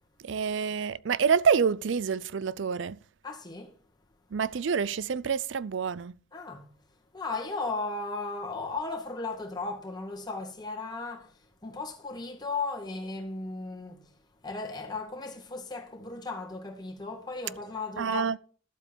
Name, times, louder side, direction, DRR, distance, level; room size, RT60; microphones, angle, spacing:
voice 1, 0.2-3.0 4.3-6.1 18.0-18.4, right 6 dB, 70° right, 0.4 m, -27 dB
voice 2, 3.2-3.8 6.3-6.7 7.1-14.0 14.4-18.4, left 3 dB, 20° left, 2.0 m, -36 dB
12.0 x 8.1 x 5.5 m
head